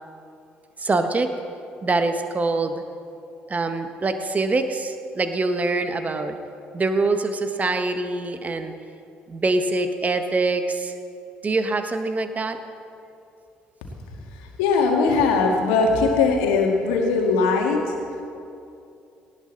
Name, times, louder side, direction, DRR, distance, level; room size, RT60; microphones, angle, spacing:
voice 1, 0.8-1.3 1.8-2.8 3.5-6.4 6.7-8.7 9.3-10.9 11.4-12.6, right 3 dB, 30° right, 7 dB, 1.5 m, -24 dB
voice 2, 14.3-18.2, left 4 dB, 70° left, 1 dB, 2.3 m, -20 dB
18.5 x 17.0 x 4.1 m, 2.6 s
figure-of-eight pair, 50°, 5 cm